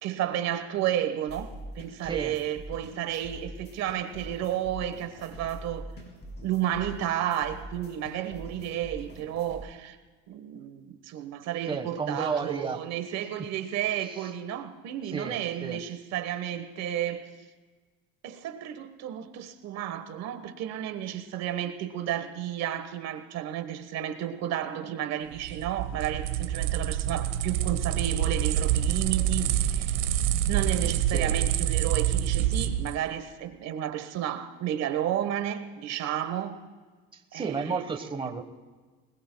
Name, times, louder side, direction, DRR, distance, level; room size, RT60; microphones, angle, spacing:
voice 1, 0.0-5.9 6.4-10.0 10.3-17.3 18.2-30.0 30.5-36.6 37.3-37.8, right 11 dB, 60° right, 1.3 m, -32 dB
sound 1, 1.3-9.6, equal, 35° left, 6.1 m, -44 dB
voice 2, 2.0-2.3 11.7-12.8 14.0-14.3 15.1-15.8 31.1-31.3 37.1-38.4, right 5 dB, 15° right, 1.3 m, -33 dB
sound 2, 25.3-33.0, right 11 dB, 90° right, 1.1 m, -27 dB
28.0 x 21.0 x 2.3 m
cardioid pair, 115°, 30 cm